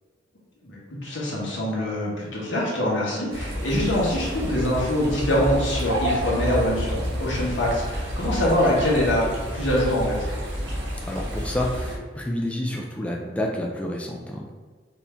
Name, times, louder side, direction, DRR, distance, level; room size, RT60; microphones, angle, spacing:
voice 1, 0.6-9.3 9.5-10.3, left 1 dB, 80° left, -5 dB, 1.3 m, -24 dB
sound 1, 3.3-12.0, equal, 85° right, 1.2 m, -29 dB
voice 2, 11.1-14.5, left 1 dB, 5° left, -2 dB, 0.3 m, -29 dB
4.3 x 2.7 x 3.4 m, 1.4 s
head